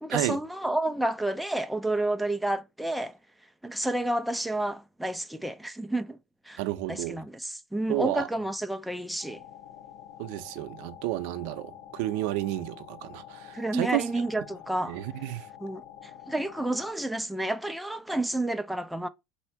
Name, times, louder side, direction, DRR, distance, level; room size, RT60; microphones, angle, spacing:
voice 1, 0.0-3.1 3.6-6.2 6.5-6.6 6.9-9.4 13.5-15.0 15.6-19.1, right 1 dB, ahead, 0.3 m, -30 dB
voice 2, 6.6-7.2 7.9-8.3 10.2-14.0 14.8-15.5, right 16 dB, 65° right, 0.5 m, -31 dB
sound 1, 9.2-16.9, left 10 dB, 65° left, 1.0 m, -47 dB
4.2 x 2.7 x 4.3 m
cardioid pair, 155°, 0 cm